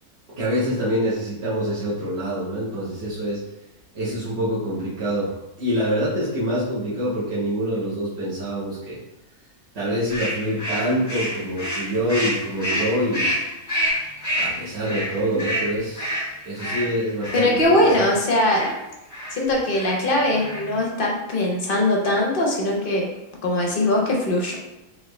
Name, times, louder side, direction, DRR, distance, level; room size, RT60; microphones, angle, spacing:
voice 1, 0.4-3.4 3.9-5.3 5.6-9.0 9.7-13.3 14.3-18.1, equal, 45° right, -11 dB, 1.3 m, -25 dB
sound 1, 10.1-18.1 18.5-18.7 19.1-19.4 19.7-20.0 20.3-20.8, equal, 15° left, 1.0 m, -28 dB
voice 2, 17.3-18.7 19.3-23.0 23.4-24.6, left 1 dB, 45° left, -2 dB, 0.8 m, -21 dB
3.8 x 3.2 x 3.2 m, 0.96 s
omnidirectional pair, 1.7 m